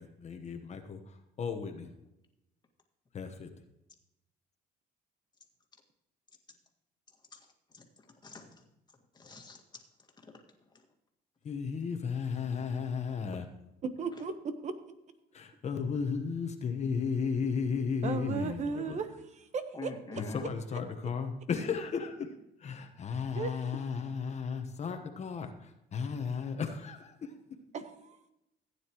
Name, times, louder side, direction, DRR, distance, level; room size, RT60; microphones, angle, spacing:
voice 1, 0.0-1.9 3.1-3.5 11.4-13.5 15.3-19.0 20.2-22.3 22.6-27.3, left 5 dB, 40° left, 6 dB, 1.1 m, -34 dB
voice 2, 8.2-8.7 9.1-9.8 10.2-10.3 19.7-20.5, left 3 dB, 25° left, 2 dB, 1.9 m, -45 dB
voice 3, 13.8-14.7 18.0-19.3 19.5-20.2 23.3-23.5 27.7-28.3, right 5 dB, 45° right, 9 dB, 1.2 m, -36 dB
15.5 x 9.5 x 3.1 m, 0.87 s
cardioid pair, 110°, 17 cm